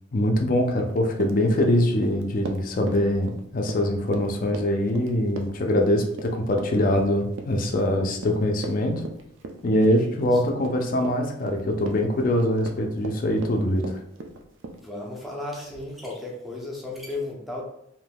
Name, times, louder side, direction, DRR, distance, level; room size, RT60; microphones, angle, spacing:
voice 1, 0.1-9.0 9.6-14.0, left 1 dB, 45° left, 3 dB, 0.4 m, -23 dB
Run, 0.7-14.8, right 2 dB, 70° right, 0.4 m, -38 dB
voice 2, 10.0-10.4 14.8-17.7, left 2 dB, ahead, -3 dB, 0.6 m, -35 dB
3.4 x 2.7 x 2.2 m, 0.76 s
head